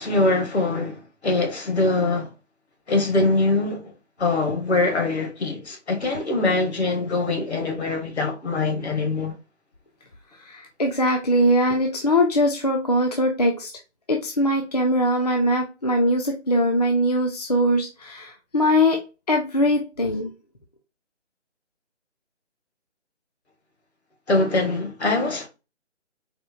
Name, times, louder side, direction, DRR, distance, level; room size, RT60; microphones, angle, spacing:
voice 1, 0.0-2.3 2.9-3.8 4.2-9.3 24.3-25.5, left 2 dB, 65° left, 1.3 m, -23 dB
voice 2, 10.4-13.7 14.1-19.0 19.3-20.3, equal, 35° left, 0.4 m, -21 dB
4.2 x 2.1 x 2.4 m
figure-of-eight pair, 150°, 36 cm